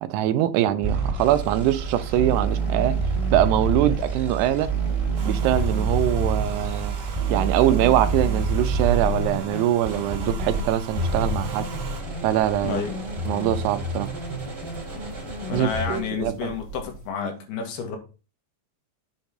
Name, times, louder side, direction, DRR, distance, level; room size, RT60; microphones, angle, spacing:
voice 1, 0.0-3.0 3.3-4.7 5.2-7.0 7.3-11.7 12.2-12.8 13.3-14.1 15.5-16.6, right 12 dB, 85° right, 2.7 m, -23 dB
sound 1, 0.8-10.6 10.9-16.0, right 4 dB, 20° right, 2.4 m, -27 dB
sound 2, 1.2-17.1, right 2 dB, 40° right, 3.2 m, -39 dB
Domestic sounds home sounds, 5.2-12.0, right 6 dB, 65° right, 1.6 m, -43 dB
voice 2, 12.6-12.9 15.5-18.0, left 6 dB, 75° left, 3.5 m, -30 dB
8.0 x 4.3 x 5.2 m
omnidirectional pair, 4.8 m